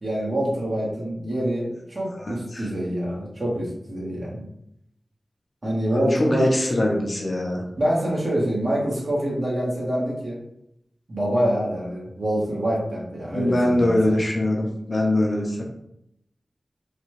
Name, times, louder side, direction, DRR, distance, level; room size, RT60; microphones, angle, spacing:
voice 1, 0.0-4.5 5.6-6.5 7.8-10.4 11.1-14.2, equal, 55° right, -5 dB, 1.4 m, -26 dB
voice 2, 2.2-2.6 5.9-7.6 13.3-15.6, left 1 dB, 55° left, -1 dB, 0.9 m, -23 dB
3.8 x 2.3 x 3.1 m, 0.76 s
wide cardioid pair, 60°, 0 cm